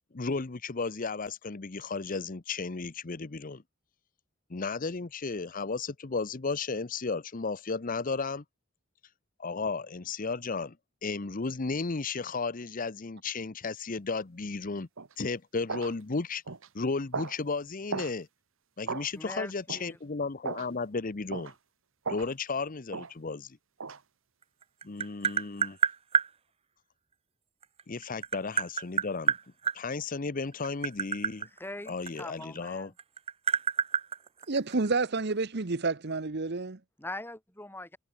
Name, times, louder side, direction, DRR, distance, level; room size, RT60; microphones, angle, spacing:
voice 1, 0.1-3.6 4.5-8.4 9.4-10.8 11.0-14.9 15.2-16.4 16.7-18.3 18.8-21.5 22.1-23.6 24.8-25.8 27.9-29.4 29.7-31.5 31.9-32.9, left 4 dB, 40° left, 0.8 m, -34 dB
sound 1, 15.0-15.1 15.7-15.9 16.5-16.7 17.1-17.4 17.9-18.1 18.9-19.1 19.7-19.9 20.4-20.7 21.3-21.5 22.1-22.3 22.9-23.1 23.8-24.0, right 4 dB, 70° right, 1.3 m, -36 dB
voice 2, 19.1-20.0 31.4-32.9 37.0-38.0, left 1 dB, 10° left, 4.0 m, -42 dB
Tap, 24.4-26.3 27.6-29.8 30.5-32.7 33.0-35.0, right 6 dB, 30° right, 0.7 m, -28 dB
voice 3, 34.5-36.8, right 3 dB, 55° right, 1.0 m, -29 dB
head